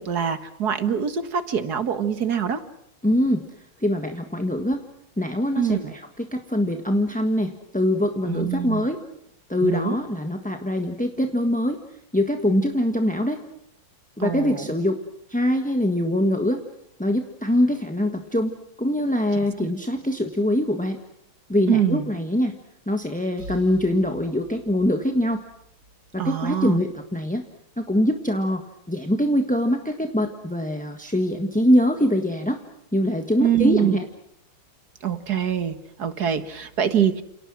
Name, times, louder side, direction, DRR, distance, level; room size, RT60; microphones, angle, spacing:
voice 1, 0.0-2.6 5.6-5.9 8.3-8.9 9.6-10.0 14.2-14.7 21.7-22.1 26.2-26.8 33.4-34.0 35.0-37.2, right 8 dB, 50° right, 10 dB, 2.0 m, -24 dB
voice 2, 3.0-3.4 3.8-4.8 5.2-9.0 9.5-11.8 12.1-13.4 14.2-14.9 15.3-16.6 17.0-21.0 21.5-22.5 22.9-25.4 26.1-27.4 27.8-28.6 28.9-32.6 32.9-34.1, left 1 dB, 5° left, 4 dB, 1.2 m, -23 dB
sound 1, 23.4-27.1, right 2 dB, 75° right, 5.1 m, -45 dB
29.5 x 28.0 x 6.3 m, 0.76 s
omnidirectional pair, 2.2 m